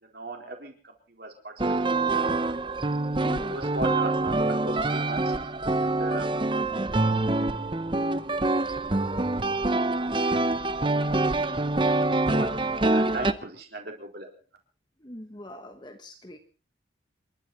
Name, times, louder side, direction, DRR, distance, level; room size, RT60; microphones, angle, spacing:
voice 1, 0.0-1.6 1.9-2.4 3.5-5.3 5.8-6.6 6.9-7.5 8.6-9.0 10.9-11.3 11.8-12.5 12.8-14.3, right 2 dB, 55° right, 3 dB, 4.2 m, -39 dB
sound 1, 1.6-13.3, right 2 dB, 25° right, 0.8 m, -25 dB
voice 2, 3.2-3.6 15.0-16.4, equal, 25° left, 5 dB, 1.3 m, -42 dB
28.0 x 12.0 x 4.2 m, 0.37 s
head